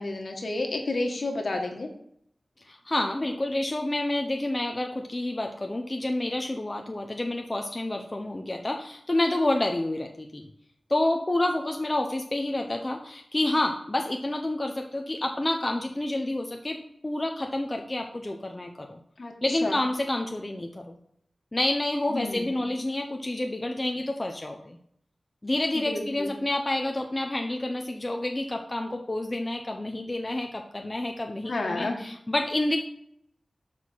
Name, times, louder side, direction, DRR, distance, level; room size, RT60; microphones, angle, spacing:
voice 1, 0.0-1.9 19.2-19.7 22.1-22.5 25.7-26.3 31.4-32.0, left 2 dB, 65° left, 3 dB, 1.7 m, -31 dB
voice 2, 2.6-10.5 10.9-19.0 19.4-21.0 21.5-24.8 25.4-32.8, left 1 dB, 30° left, 3 dB, 0.8 m, -29 dB
7.0 x 4.4 x 6.1 m, 0.71 s
cardioid pair, 45°, 0 cm